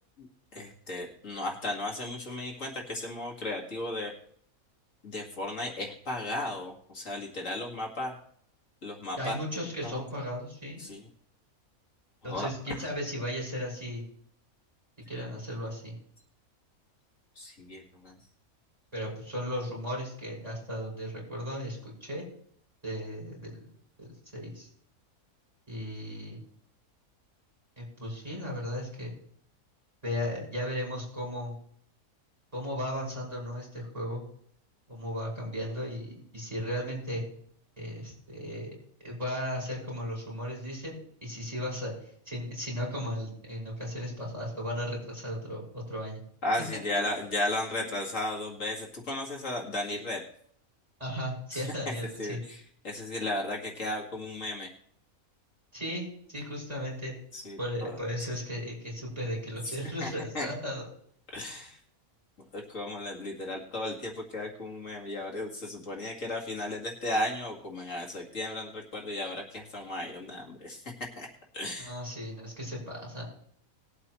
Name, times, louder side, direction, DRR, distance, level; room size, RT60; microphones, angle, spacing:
voice 1, 0.5-4.1 5.0-8.1 8.8-9.4 9.8-10.0 10.8-11.0 12.3-12.8 17.4-18.1 46.4-50.2 51.5-51.6 52.2-52.6 52.8-54.7 57.3-58.0 59.6-60.1 60.3-60.5 61.3-61.8 62.5-71.3 71.5-71.9, left 1 dB, 60° left, -1 dB, 2.4 m, -35 dB
voice 2, 9.2-10.8 12.2-14.0 15.1-16.0 18.9-22.2 22.8-23.7 24.0-24.7 25.7-26.4 27.8-29.1 30.0-31.5 32.5-34.2 34.9-37.2 37.8-38.7 39.0-46.2 47.8-47.9 51.0-52.4 55.7-57.1 57.6-60.9 71.8-73.2, equal, 25° right, -4 dB, 6.2 m, -36 dB
20.0 x 8.2 x 3.2 m, 0.64 s
omnidirectional pair, 1.5 m